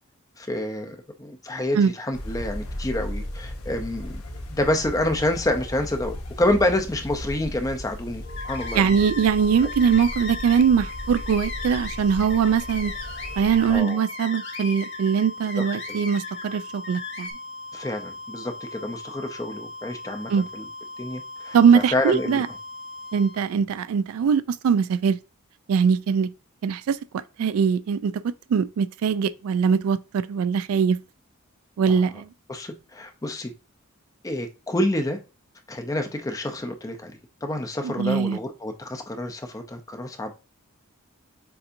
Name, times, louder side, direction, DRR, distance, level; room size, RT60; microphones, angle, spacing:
voice 1, 0.4-4.2 4.5-9.0 13.7-14.0 15.9-16.0 17.7-20.7 21.0-22.4 31.9-32.1 32.5-33.5 34.2-35.2 35.7-40.3, left 1 dB, 15° left, 0.5 m, -28 dB
sound 1, 2.1-13.8, left 1 dB, 90° left, 0.9 m, -36 dB
sound 2, 8.2-23.5, left 2 dB, 70° left, 2.0 m, -39 dB
sound 3, 8.3-9.3 9.6-16.5 16.8-17.3, left 4 dB, 55° left, 1.7 m, -38 dB
voice 2, 8.7-12.9 13.4-17.3 20.3-20.4 21.5-22.5 23.1-25.2 25.7-26.3 26.6-27.0 27.4-31.0 31.8-32.3 37.8-38.4, right 6 dB, 80° right, 0.3 m, -21 dB
6.8 x 2.6 x 2.6 m
head